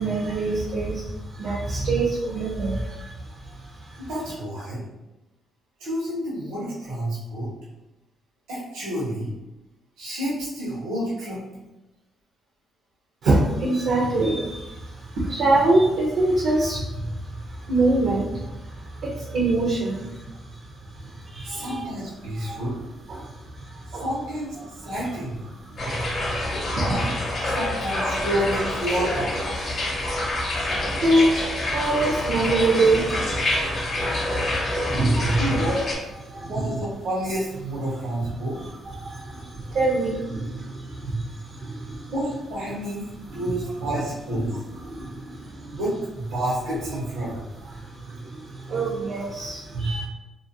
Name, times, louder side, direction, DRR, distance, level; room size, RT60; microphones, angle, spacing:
voice 1, 0.0-4.1 13.2-21.9 22.3-22.6 23.1-24.0 24.6-24.7 25.0-25.1 25.5-27.2 27.5-27.8 29.5-35.8 36.2-36.7 38.2-42.1 43.3-43.4 44.3-45.8 47.3-50.0, right 2 dB, 70° right, -5 dB, 0.5 m, -26 dB
voice 2, 4.1-4.8 5.8-7.5 8.5-9.3 10.0-11.4 21.4-22.8 24.0-25.4 26.8-27.1 27.5-29.2 35.4-35.8 36.4-38.6 42.1-44.5 45.7-47.4, right 1 dB, 90° right, -7 dB, 0.9 m, -29 dB
sound 1, 25.8-35.9, left 1 dB, 45° left, 0.7 m, -27 dB
2.4 x 2.2 x 2.5 m, 1.0 s
cardioid pair, 90°, 0 cm